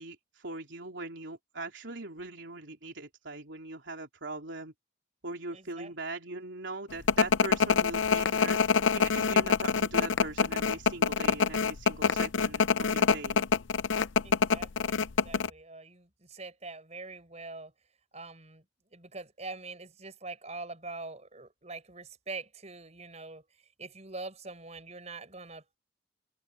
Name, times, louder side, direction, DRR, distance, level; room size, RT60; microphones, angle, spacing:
voice 1, 0.0-4.7 5.2-13.4, right 2 dB, 80° right, 3.2 m, -41 dB
voice 2, 5.5-5.9 14.2-17.7 18.1-18.6 18.9-25.8, right 3 dB, 35° right, 5.9 m, -44 dB
sound 1, 7.1-15.5, left 6 dB, 85° left, 0.6 m, -25 dB
open air
head